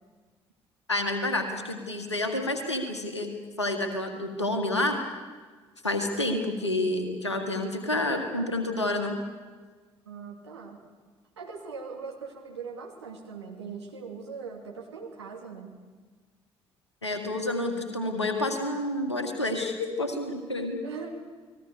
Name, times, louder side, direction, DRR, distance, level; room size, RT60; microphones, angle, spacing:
voice 1, 0.9-3.3 3.6-5.0 5.8-9.2 17.0-20.8, left 1 dB, 85° left, 6 dB, 2.0 m, -29 dB
voice 2, 10.1-10.8 11.4-15.7 20.8-21.1, right 5 dB, 80° right, 0 dB, 2.7 m, -40 dB
29.5 x 20.5 x 6.9 m, 1.4 s
figure-of-eight pair, 45°, 14 cm